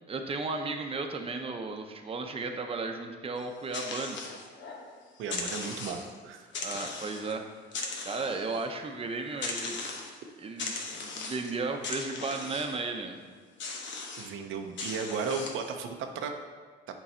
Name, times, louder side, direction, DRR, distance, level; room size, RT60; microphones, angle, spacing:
voice 1, 0.1-4.2 5.9-6.0 6.6-7.5 8.1-9.8 10.4-13.2, right 3 dB, 30° right, 4 dB, 0.7 m, -34 dB
sound 1, 3.4-4.9 5.2-6.2 6.5-7.3 7.7-8.6 9.4-10.2 10.6-11.5 11.8-12.8 13.6-14.3 14.8-15.7, left 4 dB, 70° left, 1.0 m, -38 dB
voice 2, 5.2-6.5 14.2-16.4, right 5 dB, 85° right, 5 dB, 0.6 m, -35 dB
7.1 x 4.0 x 4.4 m, 1.5 s
cardioid pair, 90°, 20 cm